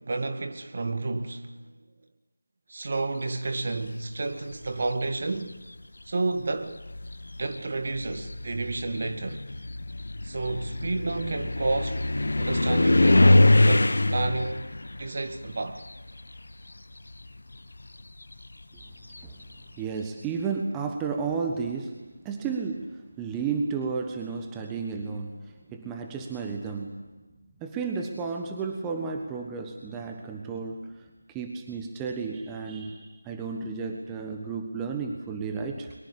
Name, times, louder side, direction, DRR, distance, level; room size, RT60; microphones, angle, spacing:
voice 1, 0.0-1.5 2.7-5.6 6.1-6.8 7.4-9.4 10.2-12.0 12.4-14.7 15.0-15.8, right 3 dB, 40° right, 2.0 m, -31 dB
sound 1, 4.5-5.1 6.1-6.2 6.7-16.6 16.9-19.6, left 2 dB, 60° left, 1.3 m, -24 dB
voice 2, 19.7-22.0 22.2-27.0 27.6-35.9, right 5 dB, 10° right, 1.3 m, -33 dB
23.5 x 22.5 x 8.5 m
figure-of-eight pair, 165°, 0 cm